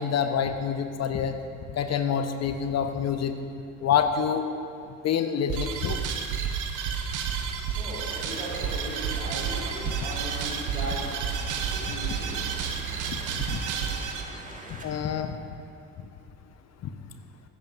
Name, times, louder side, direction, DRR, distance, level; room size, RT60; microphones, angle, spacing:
voice 1, 0.0-1.3 1.7-3.4 3.8-4.5 5.0-6.0 11.9-12.0 13.1-13.6 14.7-15.4 16.8-16.9, left 7 dB, 40° left, 7 dB, 1.0 m, -27 dB
sound 1, 5.5-14.2, right 7 dB, 50° right, 1.2 m, -31 dB
voice 2, 7.7-11.2 11.7-12.4, right 1 dB, 85° right, -5 dB, 2.2 m, -38 dB
sound 2, 8.1-14.9, right 2 dB, 20° right, 1.8 m, -42 dB
15.5 x 14.5 x 2.6 m, 2.4 s
figure-of-eight pair, 50°, 39 cm